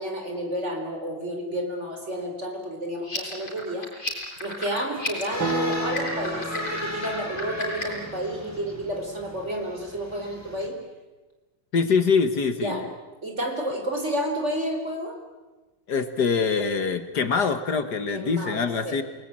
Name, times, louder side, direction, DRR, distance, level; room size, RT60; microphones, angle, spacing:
voice 1, 0.0-3.9 4.4-10.8 12.5-12.8 13.2-15.2 18.1-19.0, equal, 35° right, 4 dB, 4.6 m, -31 dB
sound 1, 3.0-8.0, left 2 dB, 25° left, 5.7 m, -34 dB
sound 2, 5.3-10.7, left 1 dB, 10° left, 4.6 m, -37 dB
sound 3, 5.4-9.5, right 2 dB, 85° right, 3.1 m, -34 dB
voice 2, 11.7-12.9 15.9-19.0, left 5 dB, 60° left, 10 dB, 1.9 m, -24 dB
28.5 x 20.0 x 8.8 m, 1.2 s
omnidirectional pair, 2.0 m